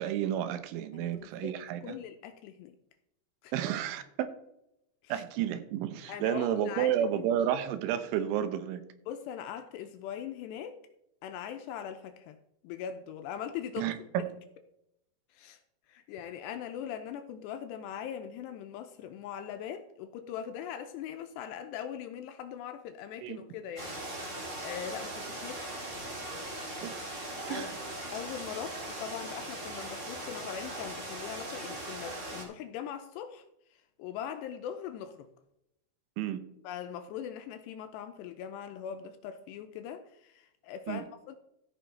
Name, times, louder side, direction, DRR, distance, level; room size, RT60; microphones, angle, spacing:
voice 1, 0.0-2.0 3.5-4.3 5.1-8.8 13.8-14.3 23.2-23.4 26.8-27.1 27.5-27.7 36.2-36.4 40.9-41.0, right 10 dB, 85° right, 3.3 m, -31 dB
voice 2, 0.9-1.6 1.8-2.7 3.4-3.5 5.0-5.2 6.1-7.3 9.1-10.8 11.2-12.4 12.6-14.1 15.3-15.6 15.9-24.0 24.3-25.6 27.5-27.7 28.1-33.4 34.0-35.3 36.6-41.4, left 9 dB, 80° left, 2.6 m, -41 dB
sound 1, 23.8-32.4, right 1 dB, 55° right, 0.8 m, -39 dB
14.5 x 6.1 x 4.1 m
omnidirectional pair, 5.3 m